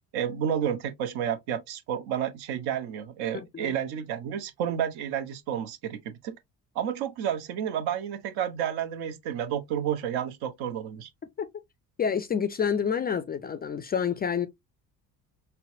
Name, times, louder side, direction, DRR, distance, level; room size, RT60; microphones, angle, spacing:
voice 1, 0.1-6.4 6.7-11.1, right 9 dB, 55° right, 0.8 m, -31 dB
voice 2, 3.3-3.8 11.4-11.5 12.0-14.5, left 7 dB, 20° left, 0.4 m, -28 dB
5.5 x 2.1 x 2.5 m
figure-of-eight pair, 50°, 46 cm